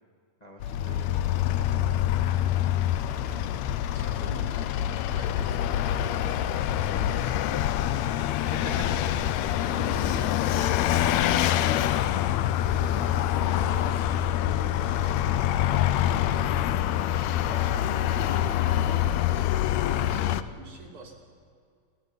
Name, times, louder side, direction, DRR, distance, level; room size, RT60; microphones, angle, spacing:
voice 1, 0.4-1.4 8.6-8.9 10.5-11.6, left 1 dB, 55° left, -1 dB, 0.4 m, -41 dB
Vehicle, 0.6-20.4, left 11 dB, 85° left, 1.5 m, -25 dB
voice 2, 3.2-3.5 3.8-10.4 12.4-16.7 17.2-21.1, right 2 dB, 40° right, -2 dB, 3.6 m, -45 dB
21.0 x 12.5 x 9.9 m, 2.2 s
omnidirectional pair, 3.8 m